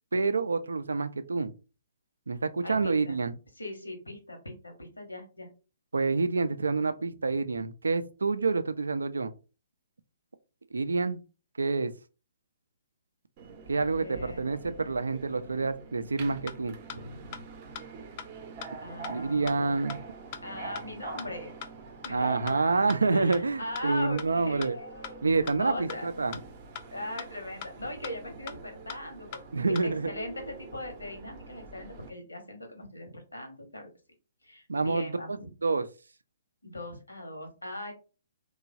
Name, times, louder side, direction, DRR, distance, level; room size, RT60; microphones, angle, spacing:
voice 1, 0.1-1.5 2.3-3.3 5.9-9.3 10.7-11.2 11.6-11.9 13.7-16.7 19.1-20.0 22.1-24.8 25.2-26.3 29.5-30.1 34.7-35.9, right 4 dB, 80° right, 0.3 m, -28 dB
voice 2, 2.3-3.2 3.5-5.5 14.0-14.8 16.9-17.5 18.8-20.0 20.4-21.5 22.0-22.4 23.1-26.1 26.9-33.9 34.4-35.5 36.6-37.9, left 1 dB, 90° left, 1.0 m, -40 dB
Subway metro underground, 13.4-32.1, right 4 dB, 35° right, 0.6 m, -45 dB
sound 1, 16.1-16.2 16.5-16.6 16.9-17.0 17.3-17.4 17.8-17.9 18.2-18.3 18.6-18.7 19.0-19.1 19.5-19.6 19.9-20.0 20.3-20.4 20.8-20.9 21.2-21.3 21.6-21.7 22.0-22.1 22.5-22.6 22.9-23.0 23.3-23.4 23.8-23.9 24.2-24.3 24.6-24.7 25.0-25.1 25.5-25.6 25.9-26.0 26.3-26.4 26.8-26.9 27.2-27.3 27.6-27.7 28.0-28.1 28.5-28.6 28.9-29.0 29.3-29.4 29.8-29.9, left 8 dB, 40° left, 0.3 m, -39 dB
2.9 x 2.3 x 2.5 m
figure-of-eight pair, 130°, 0 cm